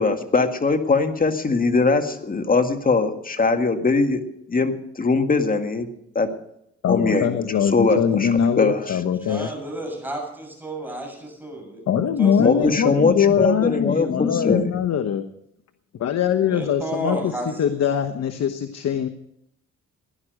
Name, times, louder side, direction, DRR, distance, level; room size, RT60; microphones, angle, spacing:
voice 1, 0.0-4.2 4.5-5.9 6.2-6.3 6.9-7.4 7.7-8.3 8.6-9.0 12.4-14.7, left 4 dB, 30° left, 6 dB, 1.9 m, -21 dB
voice 2, 6.8-9.5 11.9-15.3 16.0-17.3 17.6-19.1, left 8 dB, 60° left, 7 dB, 1.1 m, -22 dB
voice 3, 9.3-12.7 13.0-13.1 16.4-17.6, right 1 dB, 5° right, 1 dB, 6.8 m, -32 dB
16.5 x 11.0 x 6.5 m, 0.75 s
cardioid pair, 90°, 30 cm